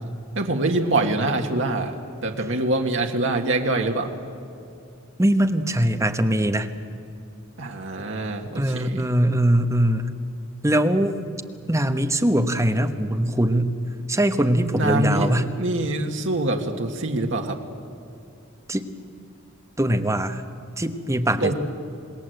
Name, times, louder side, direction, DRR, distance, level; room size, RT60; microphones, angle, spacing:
voice 1, 0.4-1.9 2.2-4.1 7.6-9.1 14.7-17.6 21.4-21.5, right 2 dB, 60° right, 2 dB, 1.9 m, -24 dB
voice 2, 5.2-6.7 8.6-10.1 10.6-11.1 11.7-13.7 14.1-15.5 18.7-18.9 19.8-20.4 20.8-21.5, right 1 dB, 15° right, 6 dB, 1.2 m, -21 dB
27.5 x 20.0 x 8.0 m, 2.5 s
head